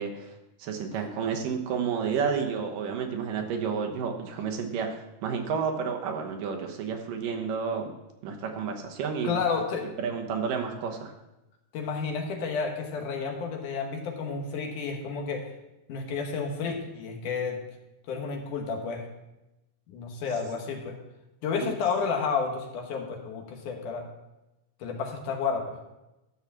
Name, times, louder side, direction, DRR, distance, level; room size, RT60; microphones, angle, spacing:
voice 1, 0.0-7.9 8.2-9.3 10.0-11.1, right 6 dB, 75° right, 3 dB, 2.7 m, -31 dB
voice 2, 9.2-9.9 11.7-15.5 15.9-17.6 18.1-19.1 19.9-21.0 21.4-24.0 24.8-25.7, left 5 dB, 70° left, 2 dB, 2.6 m, -31 dB
13.0 x 4.9 x 7.2 m, 0.96 s
omnidirectional pair, 4.0 m